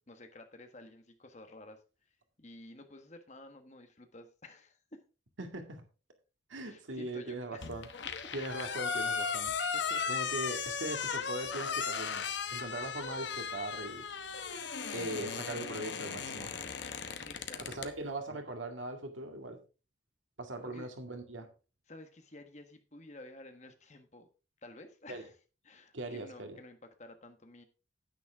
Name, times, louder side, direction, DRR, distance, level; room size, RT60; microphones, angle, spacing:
voice 1, 0.0-1.8 2.4-5.0 6.6-7.9 8.2-8.3 9.7-10.1 17.3-17.8 20.6-20.9 21.9-24.3 24.6-25.3 25.6-27.6, left 2 dB, 35° left, 7 dB, 1.4 m, -52 dB
voice 2, 5.4-5.8 6.5-7.9 8.3-9.5 10.1-12.2 12.5-14.6 14.9-16.5 17.7-19.6 20.4-21.5 25.1-25.2 25.9-26.6, right 1 dB, 90° right, 5 dB, 2.1 m, -40 dB
sound 1, 7.6-17.9, left 6 dB, 70° left, 1.1 m, -36 dB
9.7 x 9.4 x 3.6 m, 0.32 s
head